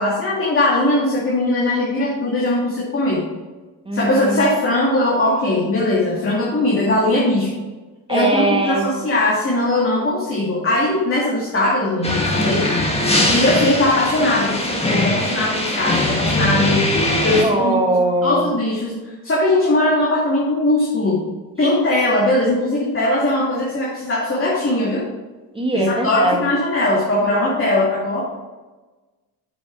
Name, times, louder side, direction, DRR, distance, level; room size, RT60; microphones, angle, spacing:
voice 1, 0.0-3.3 3.9-7.5 8.1-12.7 13.3-16.8 17.2-17.8 18.2-21.2 21.6-25.1 25.7-28.3, left 1 dB, 30° left, -5 dB, 2.3 m, -19 dB
voice 2, 3.9-4.4 8.1-8.9 13.0-13.4 17.4-18.5 25.5-26.4, right 1 dB, 15° right, 2 dB, 1.6 m, -21 dB
sound 1, 12.0-17.4, left 1 dB, 15° left, 1.7 m, -20 dB
7.0 x 6.4 x 4.6 m, 1.2 s
cardioid pair, 95°, 40 cm